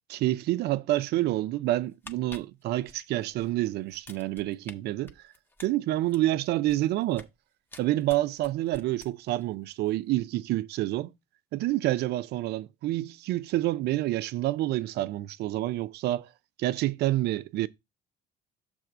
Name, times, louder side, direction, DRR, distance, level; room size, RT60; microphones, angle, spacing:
voice 1, 0.1-5.3 5.6-7.3 7.8-11.1 11.5-16.3 16.6-17.7, right 16 dB, 75° right, 0.5 m, -28 dB
sound 1, 1.8-3.5 3.9-4.7 5.1-7.4 7.7-9.5 9.7-9.9, left 1 dB, 10° left, 0.9 m, -49 dB
6.6 x 3.5 x 5.9 m
cardioid pair, 110°, 17 cm